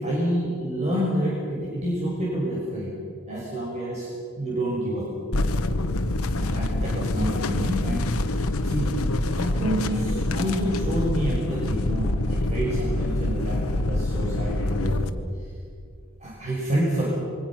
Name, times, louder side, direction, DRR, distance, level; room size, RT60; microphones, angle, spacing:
voice 1, 0.0-2.9 3.3-4.1 4.4-5.1 6.4-8.3 8.6-8.9 9.3-15.1 16.2-17.1, right 1 dB, 30° right, -5 dB, 5.6 m, -28 dB
sound 1, 5.3-15.1, left 2 dB, 85° left, 1.2 m, -26 dB
27.5 x 23.0 x 5.9 m, 2.3 s
head